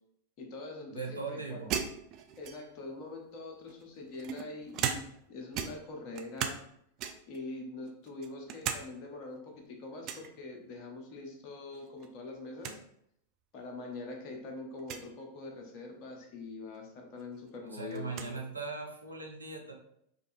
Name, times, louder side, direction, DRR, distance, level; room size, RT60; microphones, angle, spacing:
voice 1, 0.4-1.7 2.4-6.6 7.3-12.8 13.5-18.4, left 2 dB, 40° left, 2 dB, 0.9 m, -44 dB
voice 2, 0.9-1.7 17.7-19.7, right 4 dB, 80° right, 0 dB, 0.7 m, -39 dB
sound 1, 1.7-2.9 3.7-5.3 5.5-6.7 7.0-7.4 7.9-8.8 9.2-9.3 10.0-10.3 11.7-12.1 12.3-12.4 12.6-12.8 13.6-13.7 14.8-15.1 16.7-16.8 17.2-18.3, right 8 dB, 40° right, 0.4 m, -37 dB
5.1 x 2.6 x 2.6 m, 0.73 s
figure-of-eight pair, 90°, 0 cm